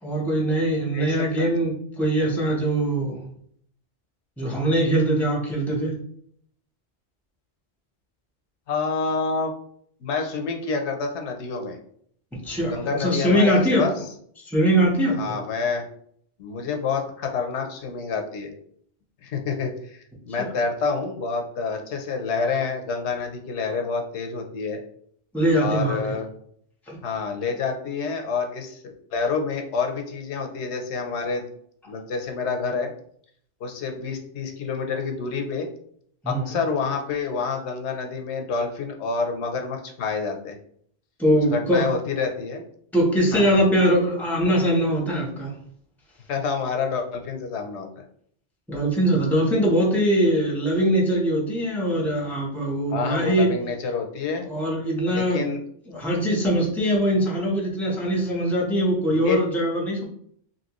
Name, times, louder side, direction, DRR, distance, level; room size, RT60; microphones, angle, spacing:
voice 1, 0.0-3.2 4.4-6.0 12.4-14.0 14.4-15.4 20.4-20.5 25.3-26.0 26.9-27.0 36.2-36.6 41.2-41.9 42.9-45.5 48.7-53.5 54.4-55.4 55.9-60.0, right 1 dB, ahead, -2 dB, 0.6 m, -22 dB
voice 2, 0.9-1.5 8.7-9.5 10.0-11.8 12.6-14.0 15.2-15.8 16.4-18.5 19.2-24.8 25.6-26.3 27.0-31.4 31.9-32.9 33.6-35.7 36.3-40.6 41.4-42.6 43.3-43.4 46.3-48.0 52.9-54.4 55.1-55.6 59.1-59.4, left 5 dB, 90° left, 4 dB, 0.9 m, -28 dB
2.9 x 2.8 x 2.9 m, 0.64 s
omnidirectional pair, 1.1 m